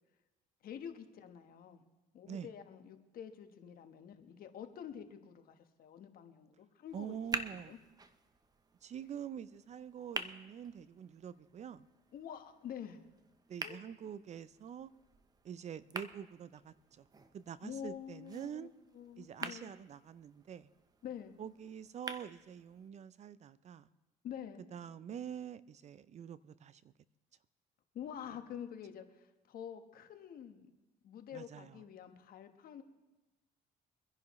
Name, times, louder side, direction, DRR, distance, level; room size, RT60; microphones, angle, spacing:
voice 1, 0.6-1.8 2.1-7.2 7.5-7.8 12.1-13.0 13.6-13.8 17.6-18.7 18.9-19.7 21.0-21.3 24.2-24.6 27.9-30.7 31.0-32.8, left 9 dB, 60° left, 7 dB, 1.3 m, -47 dB
sound 1, 6.9-22.9, right 3 dB, 20° right, 0.8 m, -48 dB
voice 2, 6.9-7.7 8.8-11.9 13.5-14.9 15.4-17.1 17.3-18.7 19.2-20.7 21.4-23.9 24.7-26.9 28.3-28.4 31.3-31.8, right 8 dB, 40° right, 16 dB, 0.5 m, -46 dB
24.5 x 10.5 x 3.1 m, 1.1 s
cardioid pair, 110°, 17 cm